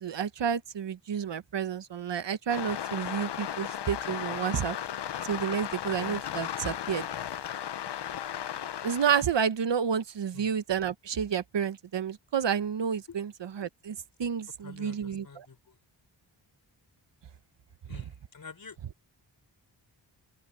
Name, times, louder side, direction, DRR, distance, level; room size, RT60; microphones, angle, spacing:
voice 1, 0.0-4.8 5.2-7.0 8.8-15.5, right 7 dB, 70° right, 1.1 m, -30 dB
sound 1, 2.5-9.2, left 10 dB, 65° left, 0.7 m, -35 dB
voice 2, 14.6-15.8 17.9-18.8, left 5 dB, 50° left, 4.6 m, -47 dB
open air
wide cardioid pair, 165°, 44 cm